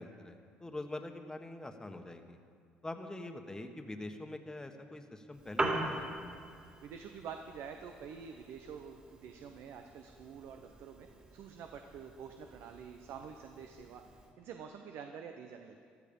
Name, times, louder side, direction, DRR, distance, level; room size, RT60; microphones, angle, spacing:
voice 1, 0.0-2.4 2.8-6.1, left 2 dB, 15° left, 6 dB, 1.4 m, -44 dB
Piano, 5.3-14.3, right 1 dB, 25° right, 2.8 m, -42 dB
voice 2, 6.8-14.0 14.4-15.8, right 7 dB, 70° right, 5 dB, 0.8 m, -47 dB
14.0 x 13.0 x 5.4 m, 2.2 s
supercardioid pair, 75°, 4 cm